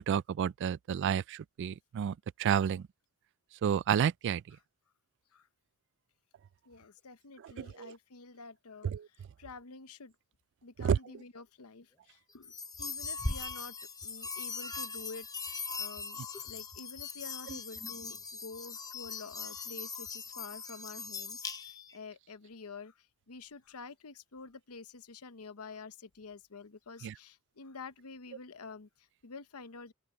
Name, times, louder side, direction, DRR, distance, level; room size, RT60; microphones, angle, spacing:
voice 1, 0.0-2.1 2.4-2.8 3.6-4.4 7.6-7.9 8.9-9.0 10.8-11.0 27.0-27.1, right 8 dB, 55° right, 0.3 m, -30 dB
voice 2, 6.7-10.1 10.6-12.5 12.8-13.8 14.0-29.9, left 4 dB, 80° left, 0.9 m, -49 dB
sound 1, 12.4-22.0, left 4 dB, 15° left, 0.9 m, -40 dB
open air
head